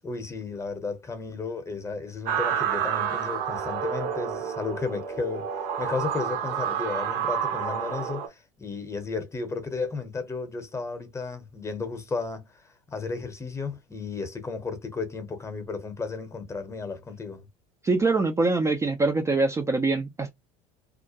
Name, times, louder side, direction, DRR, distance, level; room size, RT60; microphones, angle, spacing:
voice 1, 0.0-5.5 5.8-12.5 12.9-17.5, left 4 dB, 15° left, 0.8 m, -33 dB
sound 1, 2.3-8.3, right 8 dB, 60° right, 0.8 m, -29 dB
voice 2, 17.8-20.3, right 3 dB, 15° right, 0.4 m, -24 dB
2.4 x 2.1 x 2.8 m
hypercardioid pair, 80°, 17 cm